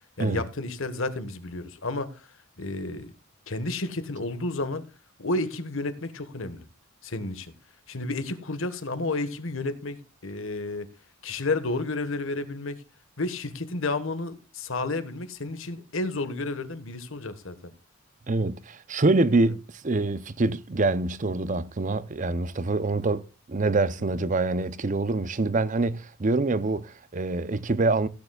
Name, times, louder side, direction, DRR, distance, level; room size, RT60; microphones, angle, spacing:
voice 1, 0.2-2.2 2.6-3.1 3.5-4.8 5.2-6.7 7.0-7.5 7.9-10.9 11.2-12.8 13.2-17.7 19.4-19.5 24.0-24.2, left 2 dB, 65° left, 1.4 m, -31 dB
voice 2, 18.3-19.6 19.8-28.1, right 2 dB, 35° right, 0.6 m, -25 dB
16.5 x 9.4 x 2.3 m
head